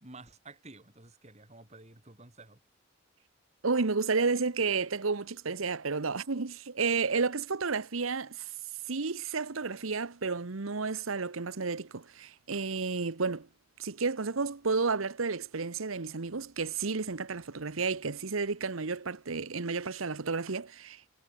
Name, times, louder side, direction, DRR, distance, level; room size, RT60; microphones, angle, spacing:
voice 1, 0.0-2.6, right 2 dB, 30° right, 3.1 m, -51 dB
voice 2, 3.6-8.5 8.9-13.5 13.8-21.0, right 4 dB, 80° right, 1.0 m, -31 dB
head